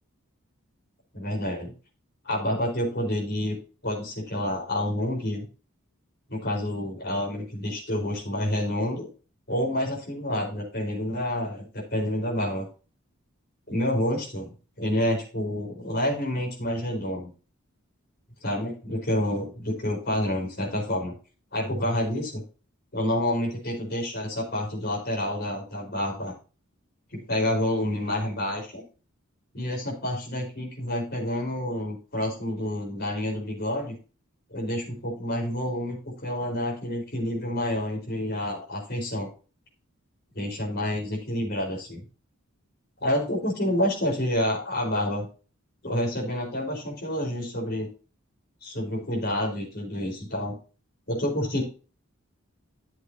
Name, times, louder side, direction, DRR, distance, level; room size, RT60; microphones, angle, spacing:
voice 1, 1.1-1.7 2.2-3.5 3.8-5.5 6.3-9.1 9.5-12.7 13.7-17.3 18.4-21.1 21.5-22.4 22.9-26.3 27.1-28.8 29.5-34.0 34.5-39.3 40.3-42.0 43.0-45.3 45.8-47.9 48.6-50.6 51.1-51.6, left 1 dB, 45° left, -2 dB, 4.5 m, -28 dB
12.0 x 7.9 x 2.8 m, 0.36 s
head